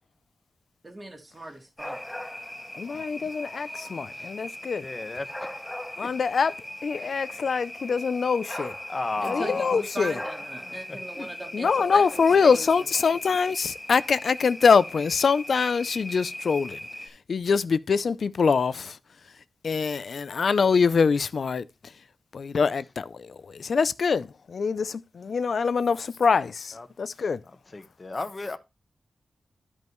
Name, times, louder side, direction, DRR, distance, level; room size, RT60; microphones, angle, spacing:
voice 1, 0.8-2.0 9.2-12.8, right 1 dB, 25° right, 2.5 m, -38 dB
sound 1, 1.8-17.1, left 1 dB, 5° left, 1.4 m, -39 dB
voice 2, 2.8-4.9 6.0-6.5 6.8-8.7 9.2-10.2 11.5-16.8 17.3-19.0 19.6-21.7 22.3-27.4, left 5 dB, 60° left, 0.4 m, -24 dB
voice 3, 4.8-5.5 6.0-6.1 7.0-7.5 8.9-9.8 10.6-10.8 11.2-11.3 26.7-26.9 27.2-27.3 27.7-28.6, left 3 dB, 30° left, 1.1 m, -34 dB
12.5 x 5.3 x 3.1 m
wide cardioid pair, 155°, 0 cm